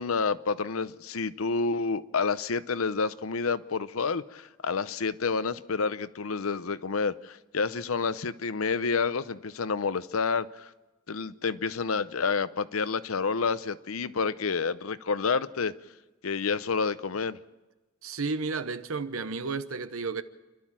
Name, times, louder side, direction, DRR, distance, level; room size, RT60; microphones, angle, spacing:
voice 1, 0.0-10.7 11.1-15.7 16.2-17.4, left 5 dB, 85° left, 0.7 m, -29 dB
voice 2, 18.0-20.2, right 4 dB, 85° right, 1.0 m, -32 dB
29.0 x 12.0 x 7.4 m
head